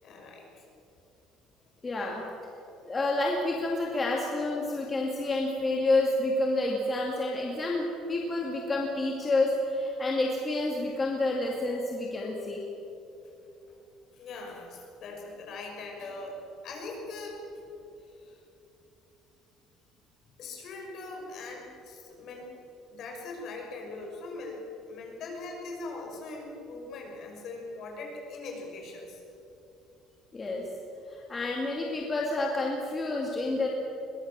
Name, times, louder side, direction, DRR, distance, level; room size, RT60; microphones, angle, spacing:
voice 1, 0.0-0.6 14.1-16.4 16.6-17.4 18.1-18.4 20.4-22.6 22.9-29.2, left 3 dB, 50° left, 0 dB, 6.0 m, -41 dB
voice 2, 1.8-2.2 2.8-12.6 30.3-30.6 31.1-33.7, left 2 dB, 20° left, -1 dB, 2.3 m, -29 dB
22.5 x 20.0 x 7.4 m, 2.9 s
cardioid pair, 160°, 0 cm